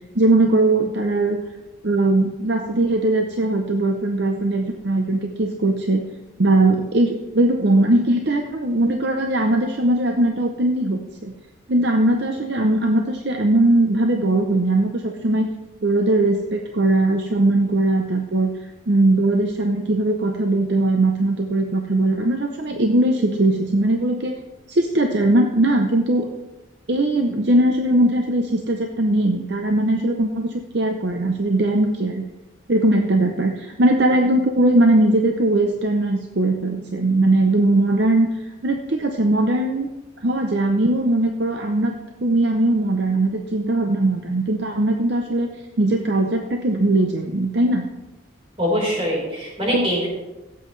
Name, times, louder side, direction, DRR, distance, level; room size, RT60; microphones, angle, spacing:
voice 1, 0.1-1.4 1.8-6.0 6.4-11.3 11.7-15.5 15.8-18.5 18.9-24.4 24.7-26.3 26.9-32.2 32.7-39.9 40.2-41.9 42.2-45.5 45.8-47.8 49.7-49.9, right 2 dB, 55° right, 4 dB, 0.7 m, -20 dB
voice 2, 48.6-50.1, equal, 30° right, -4 dB, 4.4 m, -23 dB
16.5 x 7.9 x 3.2 m, 1.1 s
head